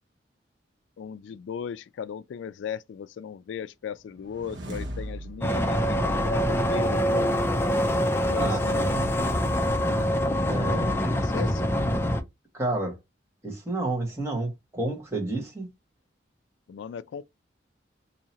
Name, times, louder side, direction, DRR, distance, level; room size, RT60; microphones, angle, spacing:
voice 1, 1.0-7.3 8.3-8.9 11.2-11.7 16.7-17.2, left 7 dB, 85° left, 0.3 m, -36 dB
sound 1, 4.1-7.3, equal, 80° right, 1.0 m, -38 dB
sound 2, 5.4-12.2, equal, 15° left, 0.5 m, -25 dB
voice 2, 8.4-9.0 10.5-11.0 12.5-13.0 13.4-15.7, right 2 dB, 15° right, 1.3 m, -30 dB
2.8 x 2.8 x 4.1 m
head